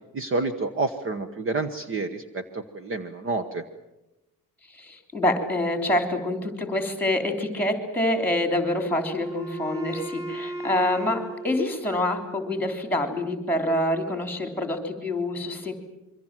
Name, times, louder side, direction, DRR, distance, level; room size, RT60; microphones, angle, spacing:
voice 1, 0.1-3.6, right 3 dB, 35° right, 10 dB, 1.2 m, -29 dB
voice 2, 4.7-15.7, left 1 dB, 5° left, 6 dB, 3.4 m, -26 dB
Wind instrument woodwind instrument, 8.5-12.5, right 2 dB, 70° right, 4.9 m, -37 dB
26.5 x 24.0 x 7.5 m, 0.97 s
cardioid pair, 180°, 34 cm